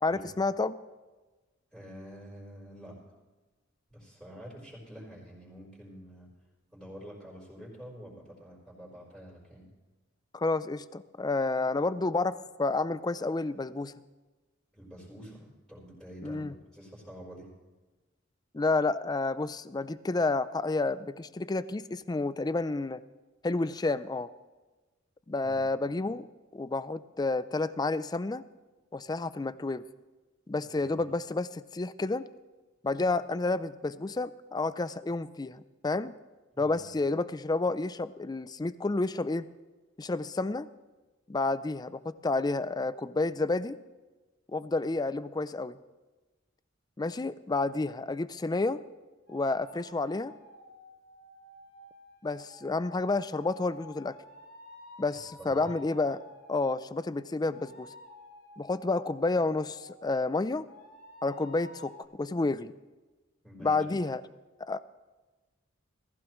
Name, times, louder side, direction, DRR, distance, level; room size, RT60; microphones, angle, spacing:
voice 1, 0.0-0.8 10.3-13.9 16.2-16.5 18.5-23.0 23.4-24.3 25.3-26.3 26.5-28.4 28.9-29.8 30.5-32.3 32.8-36.1 36.6-39.5 40.0-40.7 41.3-43.8 44.5-45.8 47.0-48.8 49.3-50.3 52.2-54.2 55.0-56.2 56.5-57.9 58.6-60.7 61.2-61.9 62.2-62.7 63.6-64.2 64.7-64.8, left 3 dB, 20° left, 15 dB, 0.4 m, -30 dB
voice 2, 1.7-3.0 3.9-6.3 6.7-9.7 14.7-17.5 25.4-25.6 30.8-31.0 36.5-36.8 55.4-55.7 63.4-63.8, equal, ahead, -8 dB, 4.0 m, -47 dB
sound 1, 49.3-56.9 57.5-60.2 60.7-62.0, left 2 dB, 65° left, 3.3 m, -52 dB
19.0 x 15.0 x 3.1 m, 1.2 s
head